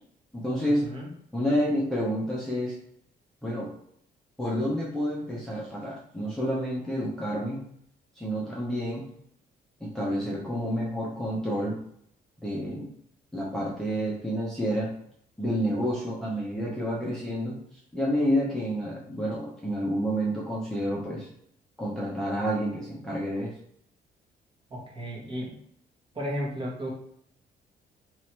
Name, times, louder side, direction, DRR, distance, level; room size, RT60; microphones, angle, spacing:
voice 1, 0.3-0.9 1.3-2.8 3.4-3.7 4.4-7.6 8.2-9.0 9.8-11.8 12.4-12.9 13.3-14.9 15.4-17.6 17.9-21.3 21.8-23.5, equal, 5° left, -6 dB, 0.8 m, -29 dB
voice 2, 24.7-25.6 26.1-26.9, equal, 30° right, -3 dB, 1.3 m, -34 dB
3.1 x 2.8 x 4.5 m, 0.67 s
cardioid pair, 135°, 17 cm